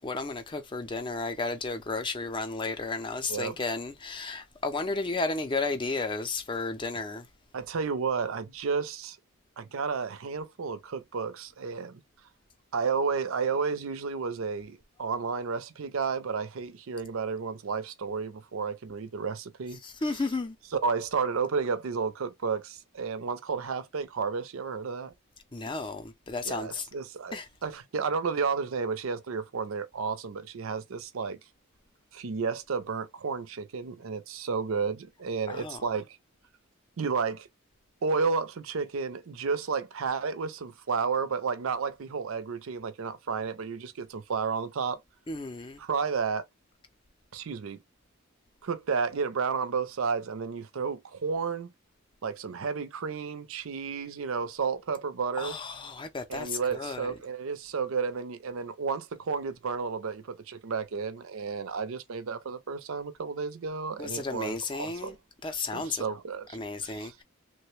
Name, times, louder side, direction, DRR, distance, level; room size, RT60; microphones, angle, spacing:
voice 1, 0.0-7.3 19.8-20.6 25.5-26.9 27.3-27.5 35.5-35.8 45.3-45.8 55.4-57.1 64.0-65.2 65.4-66.0 66.5-67.2, left 3 dB, 20° left, 0.5 m, -33 dB
voice 2, 7.5-9.2 9.6-12.0 12.7-19.8 20.8-25.1 26.4-27.4 27.6-31.4 32.1-36.1 37.0-37.5 38.0-45.0 45.8-46.4 47.3-47.8 48.6-51.7 52.2-55.6 56.3-65.2 65.7-66.6 66.8-67.1, right 5 dB, 70° right, 0.5 m, -32 dB
3.1 x 2.1 x 3.1 m
head